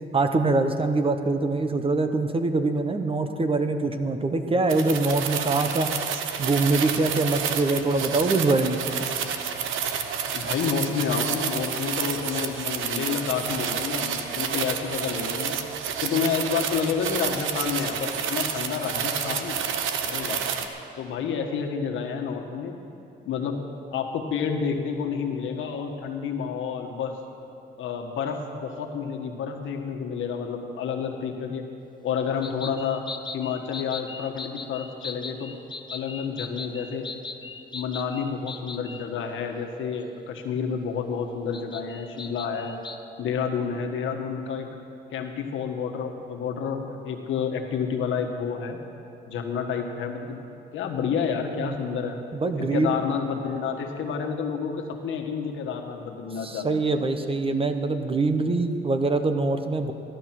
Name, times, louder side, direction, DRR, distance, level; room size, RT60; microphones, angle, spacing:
voice 1, 0.1-5.9 6.4-8.8 51.6-51.7 52.3-52.9 56.4-59.9, right 3 dB, 25° right, 7 dB, 1.1 m, -24 dB
sound 1, 4.7-20.7, right 7 dB, 80° right, 1.0 m, -29 dB
voice 2, 10.3-15.6 16.0-19.6 20.1-20.5 21.0-22.8 23.2-23.6 23.9-27.1 27.8-31.6 32.0-33.0 33.3-35.5 35.9-37.1 37.7-42.7 43.2-44.7 45.1-48.8 49.3-50.4 50.7-52.2 52.6-56.8, left 6 dB, 80° left, 3 dB, 1.5 m, -29 dB
sound 2, 32.4-39.1 41.5-43.0, left 4 dB, 25° left, 0.9 m, -39 dB
15.5 x 11.5 x 6.0 m, 2.8 s
cardioid pair, 90°, 20 cm